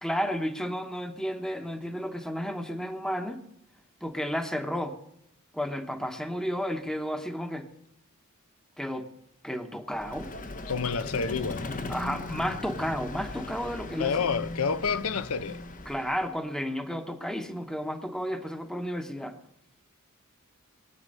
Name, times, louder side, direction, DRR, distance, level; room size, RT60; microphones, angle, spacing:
voice 1, 0.0-3.4 4.0-5.0 5.5-7.7 8.8-9.1 9.4-10.3 11.9-14.3 15.9-19.3, equal, 5° left, 1.0 m, -32 dB
Vehicle, 9.9-16.4, left 2 dB, 40° left, 0.9 m, -38 dB
voice 2, 10.7-11.7 14.0-15.6, left 5 dB, 75° left, 0.7 m, -29 dB
21.5 x 9.0 x 5.4 m
head